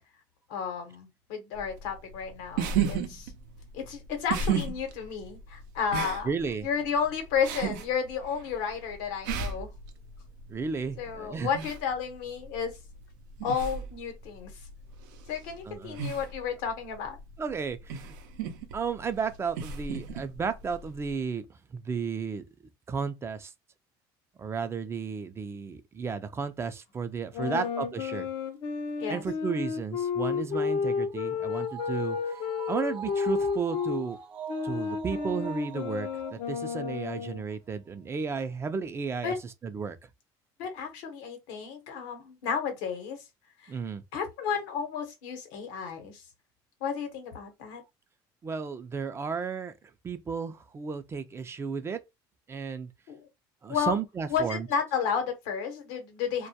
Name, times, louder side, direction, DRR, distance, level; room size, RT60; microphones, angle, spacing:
voice 1, 0.5-3.3 3.7-6.3 6.6-9.7 11.0-12.8 13.4-14.5 15.3-17.2 27.4-27.7 29.0-29.2 39.2-39.4 40.6-43.2 43.6-43.7 44.1-46.2 46.8-47.8 53.1-53.2 53.7-54.0 54.3-56.5, left 6 dB, 85° left, 0.9 m, -32 dB
sound 1, 1.6-21.2, right 6 dB, 90° right, 0.5 m, -36 dB
voice 2, 6.2-6.7 10.5-11.5 15.7-16.0 17.4-18.1 18.7-21.5 21.7-22.4 22.9-23.5 24.4-28.3 29.1-32.4 32.7-34.2 34.6-39.3 39.6-40.0 43.7-44.0 48.4-49.7 50.0-52.0 52.5-52.9 53.6-54.7, right 5 dB, 25° right, 0.4 m, -33 dB
sound 2, 27.3-34.0 34.5-37.5, left 6 dB, 60° left, 0.5 m, -32 dB
sound 3, 30.5-37.2 37.5-37.6, right 8 dB, 50° right, 0.8 m, -43 dB
2.2 x 2.1 x 2.7 m
supercardioid pair, 105°, 10 cm